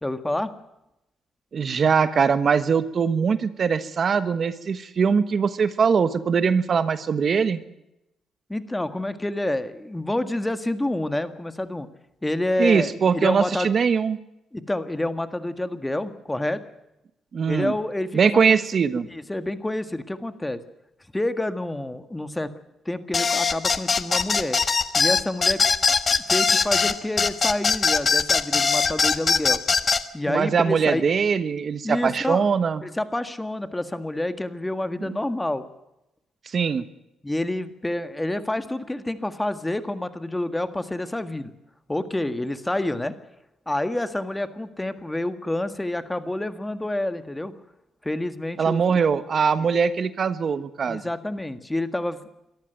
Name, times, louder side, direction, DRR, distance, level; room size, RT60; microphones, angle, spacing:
voice 1, 0.0-0.6 8.5-11.9 12.2-13.7 14.5-16.6 17.5-18.6 19.1-20.6 21.1-22.5 22.9-24.6 25.0-25.6 26.3-29.6 30.1-31.0 31.8-32.4 32.8-35.6 37.2-41.5 41.9-43.2 43.7-47.5 48.0-49.0 49.6-49.7 50.9-52.2, left 1 dB, 10° left, 10 dB, 1.7 m, -28 dB
voice 2, 1.5-7.6 12.6-14.2 17.3-17.7 18.1-19.0 30.3-32.8 35.1-35.2 36.5-36.8 48.6-51.0, right 6 dB, 50° right, 12 dB, 1.2 m, -21 dB
sound 1, 23.1-30.0, left 5 dB, 35° left, 1.4 m, -21 dB
22.5 x 14.0 x 9.2 m, 0.88 s
cardioid pair, 90°, 0 cm